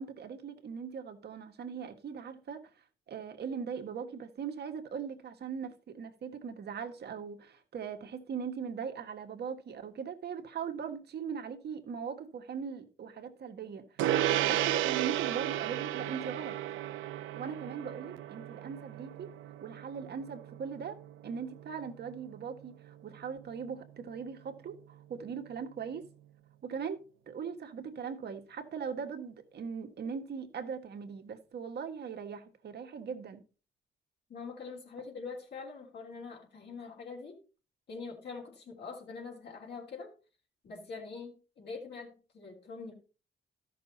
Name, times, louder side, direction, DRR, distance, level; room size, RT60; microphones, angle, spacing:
voice 1, 0.0-2.6 3.1-13.9 14.4-16.6 17.4-19.3 19.6-21.0 21.2-26.0 26.6-27.0 27.3-33.4, right 6 dB, 55° right, 1.5 m, -40 dB
Gong, 14.0-23.7, right 13 dB, 85° right, 0.6 m, -34 dB
voice 2, 34.3-37.4 37.9-40.1 40.6-42.9, left 4 dB, 60° left, 3.2 m, -44 dB
13.0 x 6.2 x 4.1 m
cardioid pair, 90°, 20 cm